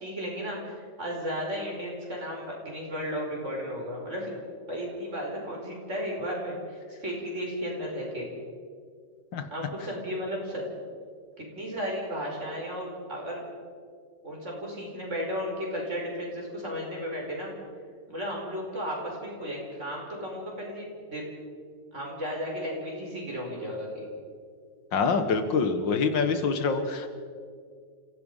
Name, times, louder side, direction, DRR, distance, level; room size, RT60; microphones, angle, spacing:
voice 1, 0.0-4.3 4.7-8.3 9.5-10.6 11.4-13.4 14.2-17.5 18.1-21.2 21.9-24.1, equal, 40° right, -2 dB, 5.4 m, -34 dB
voice 2, 24.9-27.1, left 4 dB, 90° left, 8 dB, 2.2 m, -25 dB
30.0 x 16.5 x 5.6 m, 2.1 s
omnidirectional pair, 1.9 m